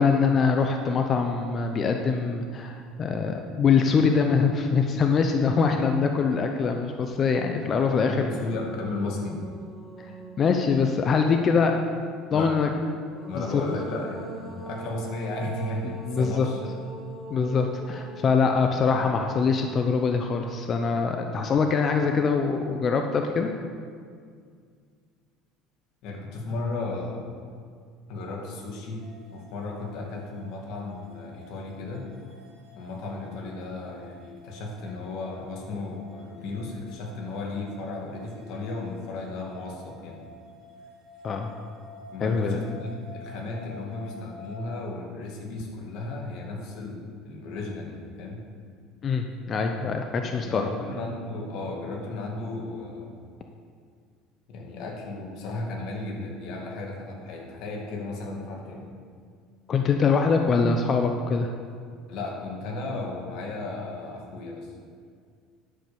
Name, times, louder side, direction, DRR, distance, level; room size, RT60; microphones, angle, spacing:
voice 1, 0.0-8.3 10.4-11.8 12.3-12.7 13.4-13.6 15.8-16.5 17.3-23.5 41.2-41.5 42.2-42.6 49.0-50.7 59.7-61.5, left 5 dB, 35° left, 4 dB, 0.7 m, -23 dB
sound 1, 7.0-7.1 7.5-11.2 12.8-20.1, right 2 dB, 5° left, 1.4 m, -43 dB
voice 2, 8.0-9.4 12.3-12.5 13.3-16.6 26.0-27.2 28.1-29.0 29.3-32.1 32.7-40.3 42.1-48.4 50.3-53.2 54.5-58.8 62.1-64.7, left 2 dB, 65° left, -1 dB, 2.3 m, -34 dB
sound 2, 29.0-44.6, left 1 dB, 55° right, 1.7 m, -50 dB
11.0 x 5.4 x 6.9 m, 2.1 s
supercardioid pair, 120°, 0 cm